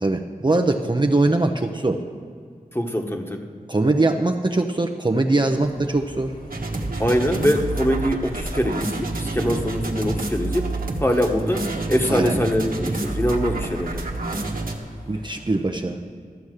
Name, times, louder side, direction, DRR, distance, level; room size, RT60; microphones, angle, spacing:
voice 1, 0.0-2.0 3.7-6.3 12.1-12.4 15.1-16.0, right 2 dB, 30° right, 4 dB, 0.7 m, -21 dB
voice 2, 2.7-3.4 7.0-10.7 11.0-14.1, equal, 15° left, 3 dB, 1.4 m, -23 dB
sound 1, 5.5-15.6, equal, 65° left, 2.8 m, -44 dB
sound 2, 6.5-14.8, right 2 dB, 70° right, 1.3 m, -28 dB
13.0 x 7.1 x 6.5 m, 2.1 s
cardioid pair, 40°, 15 cm